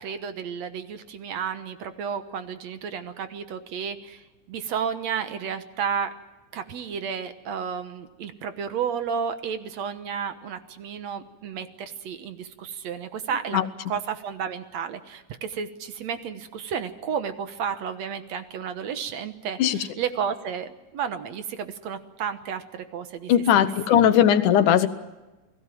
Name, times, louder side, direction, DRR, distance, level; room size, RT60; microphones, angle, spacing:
voice 1, 0.0-6.1 6.5-23.3, right 7 dB, 65° right, 10 dB, 2.2 m, -32 dB
voice 2, 23.3-24.9, left 10 dB, 75° left, 12 dB, 2.5 m, -18 dB
29.0 x 19.0 x 7.6 m, 1.1 s
omnidirectional pair, 3.6 m